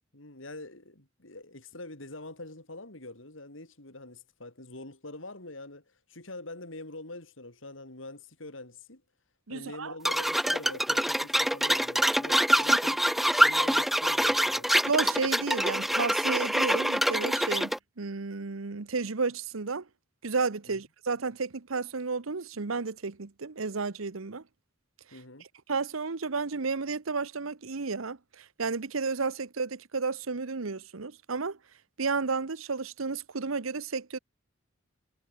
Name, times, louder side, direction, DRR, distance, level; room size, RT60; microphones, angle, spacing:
voice 1, 0.1-5.8 6.1-9.0 9.5-14.7 25.1-25.4, left 2 dB, 70° left, 4.1 m, -45 dB
voice 2, 9.5-9.9 12.7-12.8 14.9-19.9 20.2-24.4 25.7-31.6 32.0-34.2, right 4 dB, 90° right, 1.0 m, -32 dB
sound 1, 10.0-17.8, equal, ahead, 0.4 m, -25 dB
head